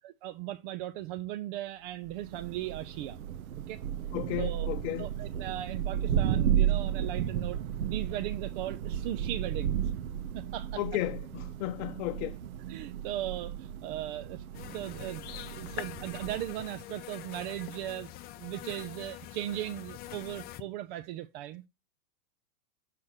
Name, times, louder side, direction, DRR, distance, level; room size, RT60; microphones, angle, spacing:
voice 1, 0.0-3.2 3.7-3.8 4.4-4.7 5.0-9.9 10.3-10.8 12.7-14.4 14.7-18.1 18.4-21.6, right 13 dB, 40° right, 0.4 m, -38 dB
Thunder, 2.1-16.7, right 10 dB, 70° right, 0.8 m, -33 dB
voice 2, 4.1-5.1 10.8-12.3 15.7-15.8, left 15 dB, 55° left, 0.7 m, -34 dB
sound 1, 14.5-20.6, left 13 dB, 25° left, 0.4 m, -44 dB
6.6 x 4.2 x 5.7 m
hypercardioid pair, 115°, 44 cm